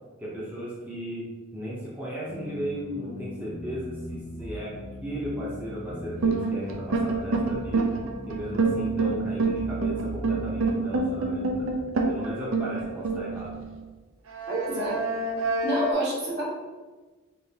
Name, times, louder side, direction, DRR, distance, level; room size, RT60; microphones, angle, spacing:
voice 1, 0.2-1.3 1.5-4.7 5.0-8.0 8.3-11.7 12.1-13.6, equal, 10° right, -8 dB, 0.7 m, -35 dB
sound 1, 2.3-11.8, left 1 dB, 35° left, 0.7 m, -40 dB
sound 2, 6.2-13.7 14.3-15.9, right 3 dB, 85° right, 0.5 m, -27 dB
voice 2, 14.5-15.0 15.6-16.5, right 1 dB, 55° right, -4 dB, 1.1 m, -27 dB
3.7 x 3.1 x 2.8 m, 1.3 s
head